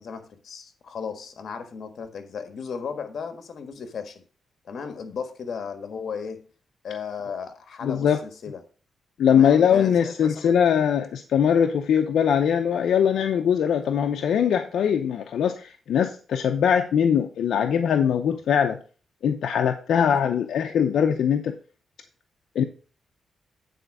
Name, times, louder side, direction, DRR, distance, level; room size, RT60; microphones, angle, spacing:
voice 1, 0.0-4.2 4.6-6.5 6.8-8.6 9.3-10.5 18.3-18.4 20.2-20.4, left 6 dB, 60° left, 1.5 m, -35 dB
voice 2, 7.8-8.2 9.2-18.8 19.2-21.5 22.5-22.6, left 8 dB, 85° left, 0.6 m, -21 dB
9.3 x 4.4 x 6.1 m
cardioid pair, 105°, 0 cm